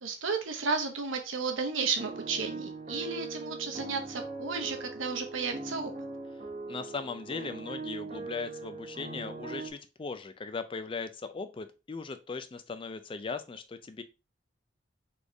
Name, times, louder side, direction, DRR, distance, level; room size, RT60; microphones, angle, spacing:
voice 1, 0.0-5.9, right 4 dB, 90° right, 5 dB, 1.0 m, -33 dB
sound 1, 2.0-9.7, right 3 dB, 35° right, 0.9 m, -41 dB
voice 2, 6.7-14.0, left 4 dB, 25° left, 10 dB, 0.4 m, -38 dB
4.2 x 3.3 x 3.4 m, 0.29 s
head